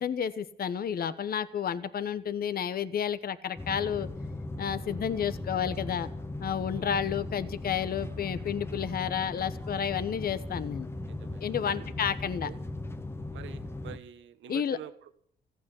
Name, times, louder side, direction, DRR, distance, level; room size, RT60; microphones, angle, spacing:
voice 1, 0.0-4.1 4.6-6.1 6.4-10.9 11.4-12.5 14.5-14.8, left 8 dB, 50° left, 13 dB, 1.0 m, -31 dB
sound 1, 3.6-14.0, left 2 dB, 10° left, 1.0 m, -38 dB
voice 2, 4.8-5.1 6.7-6.9 8.0-8.2 8.7-9.0 11.1-11.9 12.4-12.6 13.3-15.2, right 10 dB, 75° right, 11 dB, 1.3 m, -47 dB
15.0 x 9.3 x 9.8 m, 0.66 s
cardioid pair, 90°, 20 cm